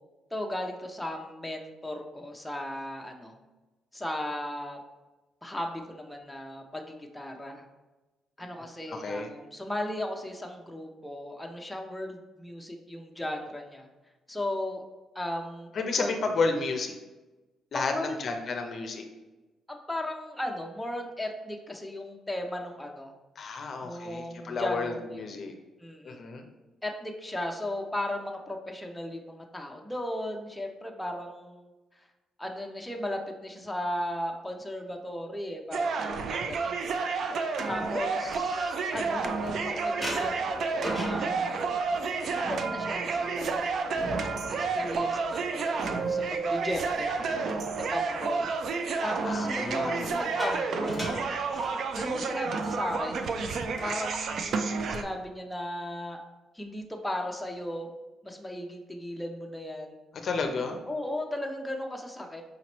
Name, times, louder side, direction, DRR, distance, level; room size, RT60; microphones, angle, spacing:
voice 1, 0.3-3.4 3.9-4.8 5.4-7.6 8.4-13.9 14.3-14.8 15.1-16.1 17.7-18.2 19.7-23.1 23.8-25.2 25.8-26.3 26.8-32.0 32.4-36.4 36.6-36.9 37.7-41.6 42.3-47.1 47.8-48.5 49.0-51.1 51.9-53.3 53.8-56.2 56.5-57.9 58.2-60.0 60.5-62.4, left 1 dB, 5° left, 2 dB, 0.5 m, -36 dB
voice 2, 8.9-9.3 15.7-16.9 17.7-19.0 23.4-25.5 26.0-26.4 37.6-37.9 47.2-47.6 49.2-50.1 60.1-60.8, left 4 dB, 55° left, 5 dB, 0.5 m, -32 dB
sound 1, 35.7-55.0, right 4 dB, 65° right, 0.4 m, -30 dB
sound 2, 38.1-39.6 40.0-47.8 48.2-48.5 49.7-52.3 52.6-52.8 53.1-53.4 53.9-54.5, right 1 dB, 20° right, 1.1 m, -40 dB
5.0 x 2.9 x 3.0 m, 1.1 s
cardioid pair, 90°, 0 cm